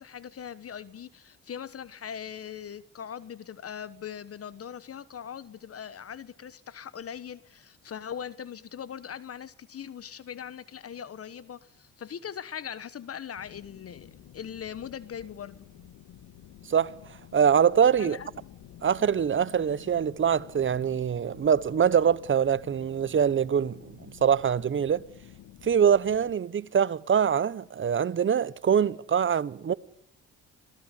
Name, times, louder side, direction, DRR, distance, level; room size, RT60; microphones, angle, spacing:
voice 1, 0.0-14.1 14.3-15.7 18.0-18.3, left 8 dB, 50° left, 1.3 m, -40 dB
sound 1, 13.3-26.3, left 11 dB, 80° left, 1.9 m, -51 dB
voice 2, 17.3-18.2 18.8-25.0 25.6-29.7, right 8 dB, 40° right, 1.1 m, -24 dB
26.0 x 18.0 x 8.4 m
cardioid pair, 90°, 30 cm